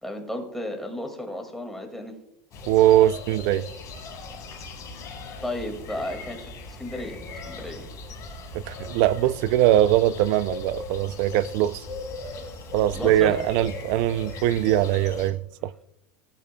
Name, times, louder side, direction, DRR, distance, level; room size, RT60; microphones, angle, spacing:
voice 1, 0.0-2.1 5.4-7.2 7.5-7.8 12.2-12.5 12.9-13.4, left 1 dB, 5° left, 2.1 m, -34 dB
sound 1, 2.5-15.3, left 2 dB, 40° left, 3.9 m, -38 dB
voice 2, 2.7-3.7 8.5-11.8 12.7-15.7, right 13 dB, 60° right, 0.5 m, -21 dB
17.0 x 9.0 x 2.3 m
supercardioid pair, 125°, 9 cm